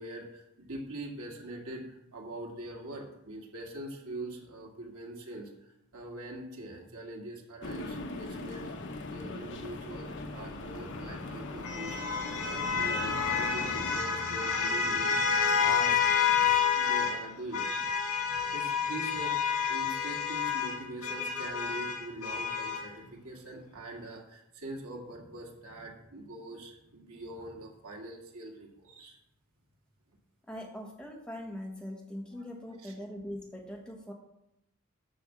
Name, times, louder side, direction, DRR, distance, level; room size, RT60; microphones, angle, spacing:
voice 1, 0.0-8.7 9.1-12.0 12.4-15.9 16.8-17.6 18.5-29.2 32.3-32.4 32.8-32.9, right 1 dB, 80° right, 0 dB, 2.4 m, -43 dB
sound 1, 7.6-14.0, left 2 dB, 55° left, 1.1 m, -41 dB
sound 2, 10.6-17.2 17.5-22.9, left 6 dB, 90° left, 2.0 m, -29 dB
voice 2, 30.4-34.1, left 1 dB, 5° left, 0 dB, 1.2 m, -41 dB
10.5 x 5.3 x 7.4 m, 0.81 s
head